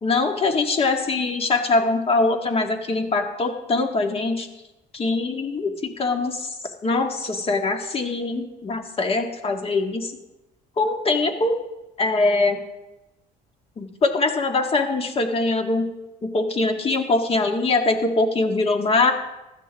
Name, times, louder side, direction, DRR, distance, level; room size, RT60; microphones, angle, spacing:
voice 1, 0.0-4.5 4.9-10.2 10.8-11.6 12.0-12.6 13.8-15.9 16.2-19.1, left 3 dB, 35° left, 5 dB, 1.7 m, -22 dB
15.5 x 12.5 x 3.5 m, 0.99 s
cardioid pair, 110°, 17 cm